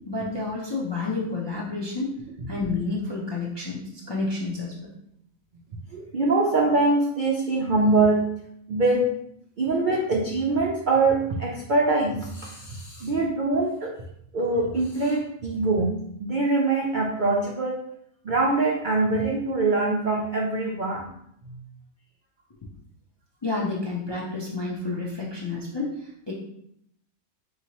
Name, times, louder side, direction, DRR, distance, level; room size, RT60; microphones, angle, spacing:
voice 1, 0.1-2.1 2.5-4.8 23.4-26.3, left 3 dB, 35° left, -4 dB, 0.4 m, -30 dB
voice 2, 5.9-8.3 8.7-9.1 9.6-13.9 14.3-17.8 18.2-21.1, right 3 dB, 60° right, -2 dB, 0.5 m, -23 dB
4.6 x 2.9 x 2.9 m, 0.73 s
omnidirectional pair, 1.5 m